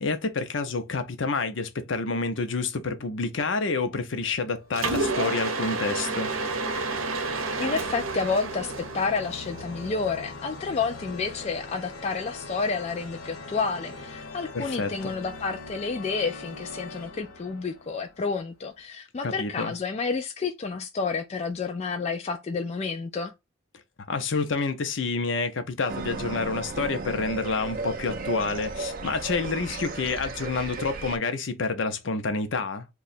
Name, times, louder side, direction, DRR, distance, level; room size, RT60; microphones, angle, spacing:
voice 1, 0.0-6.3 14.5-15.1 19.2-19.7 24.1-32.9, left 4 dB, 65° left, 0.6 m, -28 dB
sound 1, 4.2-5.4 6.0-18.7, left 3 dB, 90° left, 1.0 m, -42 dB
Mechanisms, 4.7-9.9, right 3 dB, 85° right, 0.7 m, -30 dB
voice 2, 7.6-23.3, left 4 dB, 30° left, 0.3 m, -30 dB
sound 2, 25.9-31.2, right 3 dB, 45° right, 0.5 m, -35 dB
2.9 x 2.3 x 4.1 m
head